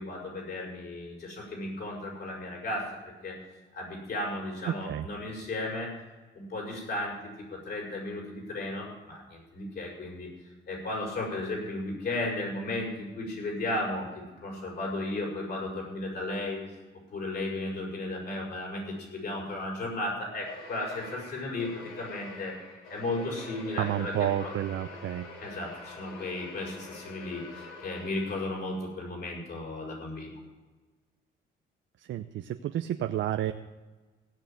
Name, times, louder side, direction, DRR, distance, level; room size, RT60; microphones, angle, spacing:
voice 1, 0.0-3.4 3.7-5.9 6.3-10.3 10.7-16.6 17.1-22.5 22.9-24.5 25.4-30.3, left 2 dB, 55° left, -2 dB, 6.6 m, -35 dB
voice 2, 4.7-5.1 23.8-25.3 32.1-33.5, right 11 dB, 70° right, 7 dB, 0.7 m, -30 dB
sound 1, 20.4-28.7, left 3 dB, 85° left, 2.9 m, -46 dB
17.0 x 6.7 x 9.3 m, 1.2 s
cardioid pair, 90°, 20 cm